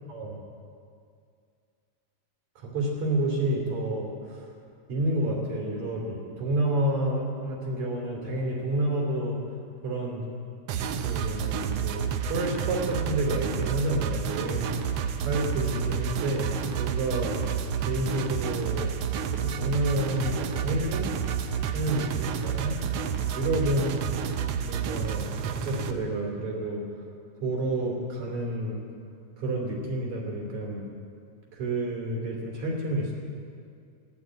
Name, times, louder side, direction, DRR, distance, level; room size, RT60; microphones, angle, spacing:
voice 1, 0.1-0.4 2.6-4.5 4.9-9.4 9.8-10.3 11.0-17.3 17.9-18.9 19.3-21.1 21.7-22.8 23.3-24.1 24.6-26.8 27.4-28.8 29.4-30.9 31.5-33.1, right 1 dB, 60° right, -1 dB, 4.1 m, -29 dB
sound 1, 10.7-25.9, right 7 dB, 80° right, 1.4 m, -30 dB
14.5 x 11.0 x 8.6 m, 2.3 s
omnidirectional pair, 3.7 m